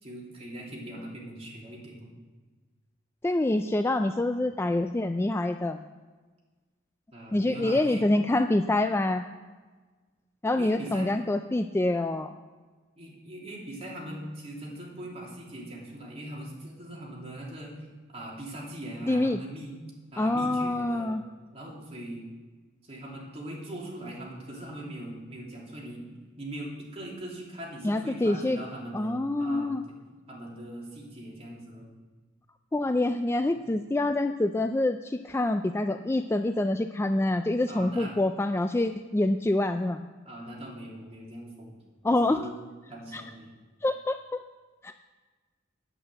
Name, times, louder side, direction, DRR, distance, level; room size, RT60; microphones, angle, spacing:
voice 1, 0.0-2.1 7.1-8.0 10.5-11.1 13.0-17.9 18.1-19.7 20.1-21.1 21.5-22.2 22.8-26.1 26.4-30.0 30.3-31.9 37.7-38.1 40.2-41.8 42.2-42.5 42.9-43.5, right 1 dB, 30° right, -3 dB, 3.0 m, -41 dB
voice 2, 3.2-5.8 7.3-9.2 10.4-12.3 19.1-19.4 20.2-21.2 27.8-28.6 28.9-29.8 32.7-40.0 42.0-42.4 43.1-43.2 43.8-44.4 44.8-45.0, left 2 dB, 15° left, 8 dB, 0.3 m, -26 dB
8.9 x 8.8 x 7.9 m, 1.3 s
head